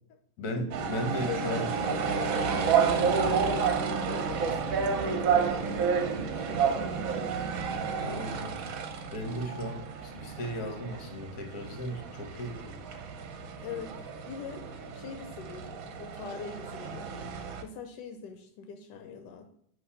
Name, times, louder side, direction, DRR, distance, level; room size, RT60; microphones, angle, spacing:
voice 1, 0.4-1.7 8.0-8.6 9.1-12.7, equal, 65° left, 5 dB, 1.6 m, -36 dB
sound 1, 0.7-17.6, right 6 dB, 60° right, 1.0 m, -30 dB
voice 2, 1.0-7.3 13.6-14.6 14.9-17.1 17.6-19.5, left 7 dB, 85° left, 5 dB, 1.3 m, -43 dB
7.9 x 2.9 x 5.5 m, 0.68 s
omnidirectional pair, 1.8 m